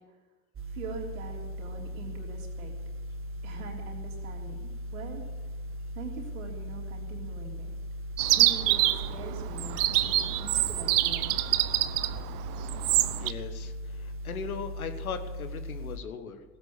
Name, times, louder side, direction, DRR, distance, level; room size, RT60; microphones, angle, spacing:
sound 1, 0.6-16.0, equal, 30° right, 1.5 m, -38 dB
voice 1, 0.7-2.8 3.4-5.3 5.9-7.7 8.2-11.4, right 4 dB, 70° right, 0 dB, 3.4 m, -43 dB
Chirp tweet, 8.2-13.3, right 15 dB, 50° right, 0.8 m, -26 dB
voice 2, 13.2-16.4, left 6 dB, 80° left, 8 dB, 1.4 m, -38 dB
17.5 x 8.1 x 8.6 m, 1.4 s
figure-of-eight pair, 70°, 42 cm